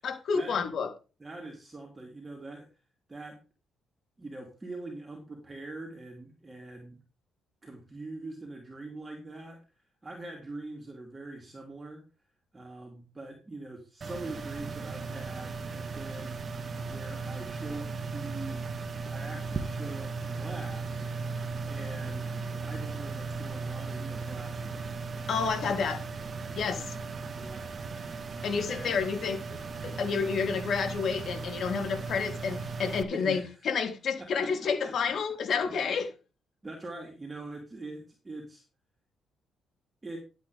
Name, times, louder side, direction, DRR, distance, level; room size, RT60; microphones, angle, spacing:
voice 1, 0.0-0.9 25.3-26.0 26.6-26.9 28.4-29.4 29.8-36.1, left 5 dB, 60° left, 3.6 m, -30 dB
voice 2, 1.2-2.7 3.1-3.4 4.2-7.0 7.6-12.0 12.5-16.4 16.9-18.6 19.1-21.0 21.6-22.3 22.6-24.9 27.3-27.6 28.6-29.0 33.1-33.6 34.2-35.1 35.7-36.0 36.6-38.6 40.0-40.2, right 2 dB, 20° right, 3.6 m, -43 dB
sound 1, 14.0-33.0, right 4 dB, 40° right, 1.7 m, -37 dB
12.5 x 8.5 x 3.6 m
cardioid pair, 90°, 0 cm